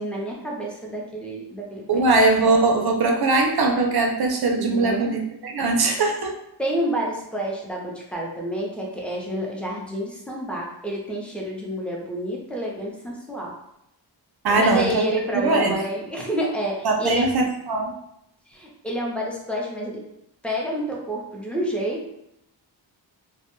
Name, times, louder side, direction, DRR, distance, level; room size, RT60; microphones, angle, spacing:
voice 1, 0.0-2.1 4.6-5.2 6.6-13.5 14.5-17.3 18.5-20.0 20.4-22.1, equal, 5° left, -3 dB, 0.6 m, -29 dB
voice 2, 1.9-6.3 14.4-15.0 15.3-15.8 16.8-17.9, right 3 dB, 55° right, 2 dB, 0.5 m, -20 dB
2.1 x 2.1 x 3.0 m, 0.81 s
wide cardioid pair, 75°, 45 cm